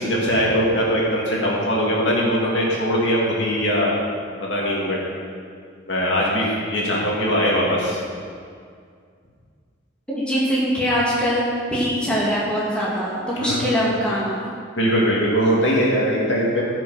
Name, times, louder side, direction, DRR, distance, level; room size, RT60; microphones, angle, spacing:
voice 1, 0.0-3.9 4.4-5.0 5.9-8.0 13.3-13.8 14.7-16.6, equal, 60° left, -4 dB, 2.4 m, -21 dB
voice 2, 10.1-11.5 11.7-14.4, equal, 5° left, -7 dB, 2.1 m, -22 dB
15.5 x 6.1 x 5.7 m, 2.2 s
head